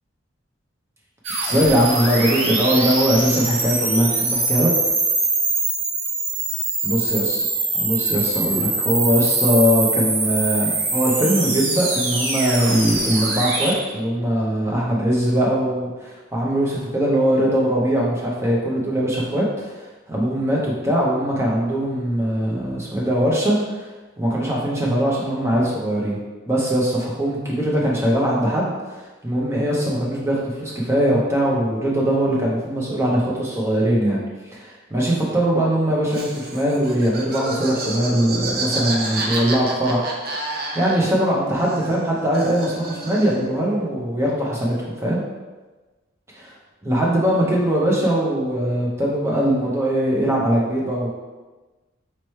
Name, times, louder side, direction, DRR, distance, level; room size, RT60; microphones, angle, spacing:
sound 1, 1.2-13.7, right 2 dB, 85° right, 0.9 m, -23 dB
voice 1, 1.4-4.7 6.8-7.4 7.7-19.7 20.1-23.9 24.2-26.2 26.5-34.2 34.5-40.1 40.7-45.2 46.3-46.5 46.8-51.1, equal, 15° right, -4 dB, 0.8 m, -21 dB
Laughter, 36.1-41.3 41.5-43.5, right 2 dB, 50° right, 0.5 m, -30 dB
4.4 x 2.9 x 3.1 m, 1.2 s
head